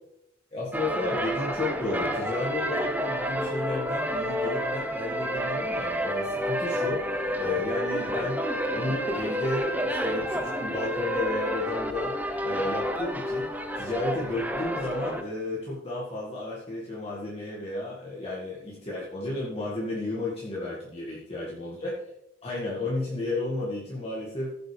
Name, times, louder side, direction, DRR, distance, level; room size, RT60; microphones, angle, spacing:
voice 1, 0.5-8.4 8.7-22.0 22.4-24.5, left 2 dB, 30° left, -6 dB, 2.1 m, -33 dB
sound 1, 0.7-15.2, equal, 10° right, 0.8 m, -30 dB
16.0 x 7.7 x 3.4 m, 0.82 s
head